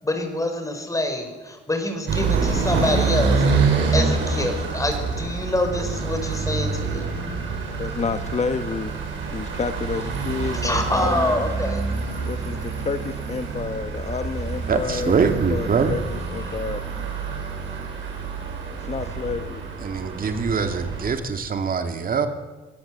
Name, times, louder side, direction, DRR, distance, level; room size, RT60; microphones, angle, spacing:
voice 1, 0.0-7.1 10.5-11.9 16.4-17.0, left 1 dB, 15° left, 6 dB, 5.8 m, -26 dB
sound 1, 2.1-21.1, right 4 dB, 75° right, 7.4 m, -26 dB
voice 2, 7.8-9.0 9.3-11.4 12.3-16.8 18.8-19.6, left 5 dB, 35° left, 8 dB, 1.1 m, -29 dB
Piano, 11.0-16.4 16.6-16.7 17.0-17.1 17.4-17.5 18.3-18.5, left 3 dB, 75° left, 3.9 m, -43 dB
voice 3, 14.7-16.0 19.8-22.3, right 5 dB, 45° right, 6 dB, 2.2 m, -23 dB
24.5 x 18.0 x 8.2 m, 1.2 s
cardioid pair, 90°, 20 cm